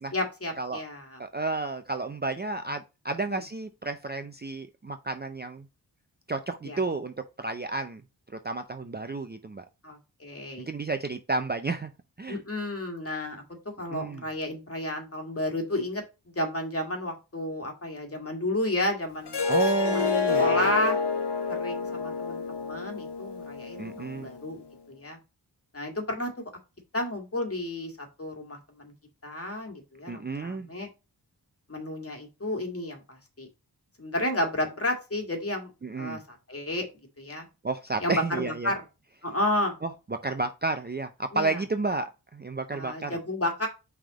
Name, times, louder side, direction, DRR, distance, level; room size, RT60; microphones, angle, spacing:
voice 1, 0.1-1.2 3.3-3.4 6.7-6.8 9.8-10.7 12.3-13.4 13.8-16.0 16.4-19.4 19.8-20.0 20.4-21.0 21.5-25.2 25.7-26.4 26.9-28.9 29.2-30.9 31.7-33.5 34.0-35.7 36.0-36.8 37.2-37.5 38.0-38.8 39.2-39.7 41.3-41.6 42.7-43.7, left 1 dB, 35° left, 3 dB, 2.0 m, -31 dB
voice 2, 1.2-5.6 6.3-8.0 8.4-9.6 10.6-11.9 12.2-12.4 13.9-14.2 19.5-20.7 23.8-24.3 30.1-30.7 35.8-36.2 37.6-38.7 39.8-43.2, right 3 dB, 25° right, 7 dB, 0.5 m, -31 dB
Harp, 19.3-24.4, left 5 dB, 70° left, 1.0 m, -28 dB
5.6 x 3.6 x 4.9 m, 0.28 s
wide cardioid pair, 80°, 42 cm